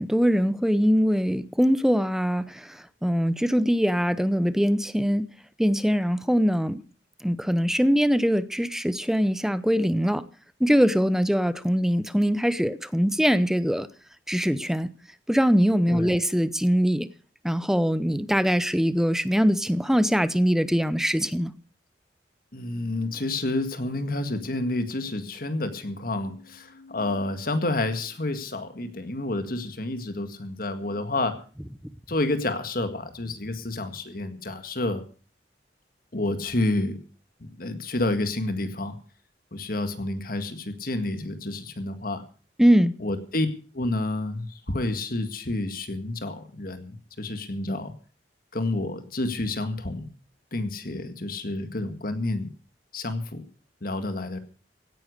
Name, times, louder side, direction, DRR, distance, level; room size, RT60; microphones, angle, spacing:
voice 1, 0.0-2.4 3.0-5.3 5.6-6.8 7.2-10.2 10.6-13.9 14.3-14.9 15.3-17.1 17.4-21.5 42.6-42.9, equal, 5° right, 0.6 m, -22 dB
voice 2, 15.9-16.2 22.5-31.4 32.1-35.0 36.1-37.0 37.4-39.0 39.5-42.2 43.0-43.5 43.7-47.9 48.5-50.1 50.5-52.5 52.9-53.4 53.8-54.4, left 2 dB, 55° left, 1.8 m, -29 dB
16.5 x 10.0 x 6.5 m
head